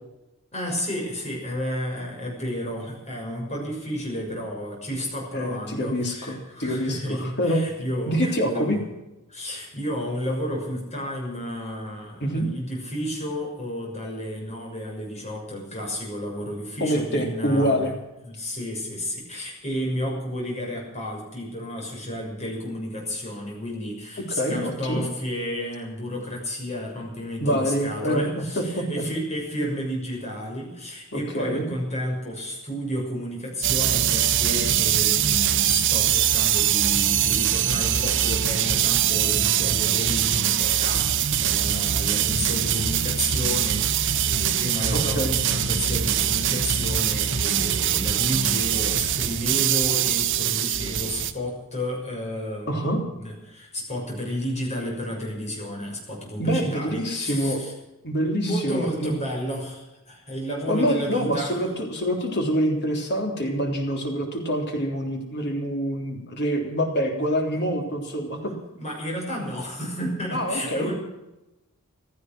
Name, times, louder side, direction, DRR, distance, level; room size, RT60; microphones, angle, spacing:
voice 1, 0.5-8.8 9.3-17.8 18.2-57.7 58.4-61.6 68.8-70.9, equal, 30° left, -1 dB, 6.4 m, -32 dB
voice 2, 5.3-7.7 8.1-8.8 12.2-12.5 16.8-17.9 24.4-25.0 27.4-29.0 31.1-31.7 44.9-45.4 52.7-53.0 56.4-57.6 58.0-59.1 60.7-68.5 70.3-70.9, equal, 50° left, 2 dB, 3.4 m, -26 dB
sound 1, 33.6-51.3, right 10 dB, 55° right, 1.0 m, -23 dB
16.0 x 14.5 x 6.2 m, 0.97 s
head